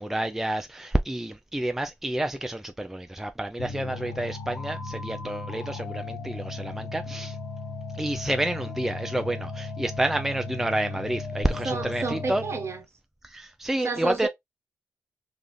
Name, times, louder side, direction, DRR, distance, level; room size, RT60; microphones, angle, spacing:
voice 1, 0.0-7.4 7.9-12.4 13.2-14.3, right 1 dB, 5° right, 0.4 m, -29 dB
sound 1, 3.6-12.8, left 3 dB, 80° left, 1.3 m, -36 dB
voice 2, 11.6-12.8 13.8-14.3, right 4 dB, 45° right, 0.9 m, -30 dB
2.5 x 2.4 x 2.9 m
hypercardioid pair, 40°, 6 cm